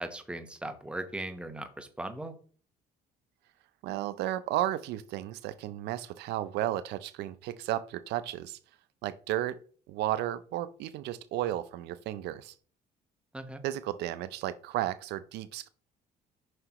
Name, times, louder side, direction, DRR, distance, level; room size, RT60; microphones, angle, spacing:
voice 1, 0.0-2.3 13.3-13.6, right 1 dB, 5° right, 7 dB, 0.9 m, -38 dB
voice 2, 3.8-8.6 9.0-9.6 9.9-12.5 13.6-15.7, right 13 dB, 80° right, 14 dB, 0.5 m, -33 dB
7.7 x 5.8 x 3.0 m, 0.43 s
cardioid pair, 110°, 17 cm